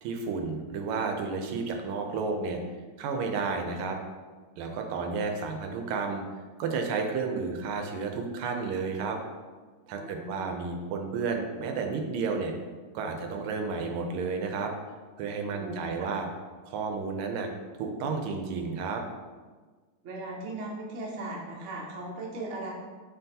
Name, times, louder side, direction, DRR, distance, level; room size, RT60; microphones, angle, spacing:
voice 1, 0.0-2.6 3.0-4.0 4.6-6.2 6.6-9.2 9.9-12.5 12.9-14.7 15.2-16.3 16.7-17.5 17.8-19.0, right 4 dB, 90° right, 4 dB, 1.5 m, -31 dB
voice 2, 9.9-10.5 15.5-16.1 20.0-22.7, right 2 dB, 65° right, -2 dB, 0.7 m, -38 dB
4.5 x 3.3 x 2.7 m, 1.4 s
omnidirectional pair, 2.3 m